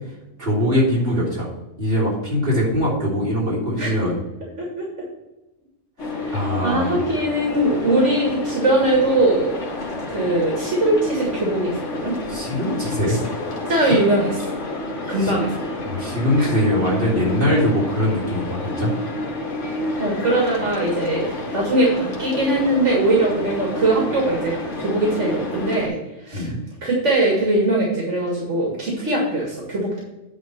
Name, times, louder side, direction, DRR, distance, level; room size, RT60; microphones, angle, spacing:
voice 1, 0.4-1.5 1.8-4.2 6.3-7.0 12.3-13.2 13.9-14.0 15.2-15.3 15.8-18.9 26.3-26.6, left 1 dB, 50° right, -7 dB, 3.6 m, -22 dB
voice 2, 3.8-4.1 4.6-4.9 6.2-9.5 10.1-12.2 13.1-13.2 13.7-14.3 15.1-15.6 16.4-16.5 20.0-26.0 26.2-26.5 26.8-30.0, right 2 dB, 80° right, -3 dB, 2.2 m, -21 dB
sound 1, 6.0-25.9, left 2 dB, 90° left, 1.8 m, -29 dB
9.7 x 3.5 x 6.8 m, 0.98 s
omnidirectional pair, 1.2 m